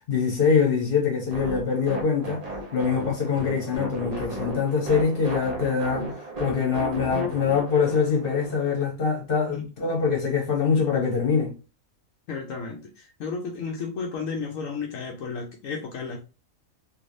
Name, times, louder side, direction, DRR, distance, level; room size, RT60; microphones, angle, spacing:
voice 1, 0.1-2.4 2.7-6.1 6.4-11.5, left 6 dB, 45° left, 1.3 m, -24 dB
sound 1, 1.3-8.7, right 1 dB, 35° right, 0.7 m, -34 dB
voice 2, 12.3-16.2, left 5 dB, 75° left, 1.0 m, -33 dB
3.2 x 2.9 x 2.6 m
omnidirectional pair, 1.4 m